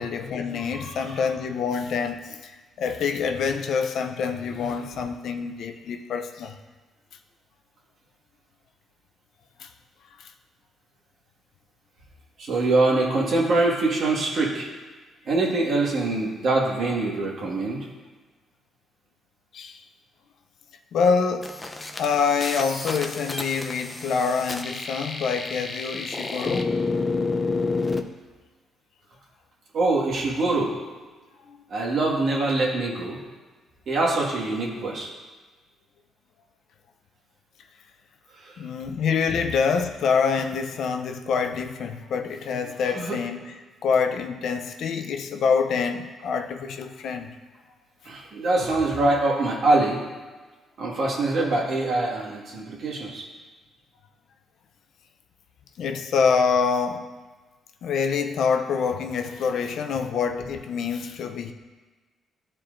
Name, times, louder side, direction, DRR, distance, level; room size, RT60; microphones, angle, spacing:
voice 1, 0.0-2.5 2.8-6.6 9.6-9.7 10.2-10.3 19.5-19.8 20.9-21.5 22.0-26.7 31.5-31.6 38.6-43.5 43.8-47.4 55.8-57.1 57.8-61.5, left 5 dB, 70° left, 6 dB, 0.5 m, -26 dB
voice 2, 0.7-1.2 12.4-14.7 15.3-17.8 29.7-30.8 31.7-33.2 33.9-35.1 38.4-38.6 42.8-43.2 48.1-50.0 50.8-53.2, right 2 dB, 60° right, -3 dB, 1.8 m, -24 dB
sound 1, 21.4-28.0, left 3 dB, 20° left, 0.6 m, -30 dB
13.0 x 4.4 x 2.6 m, 1.3 s
cardioid pair, 90°, 0 cm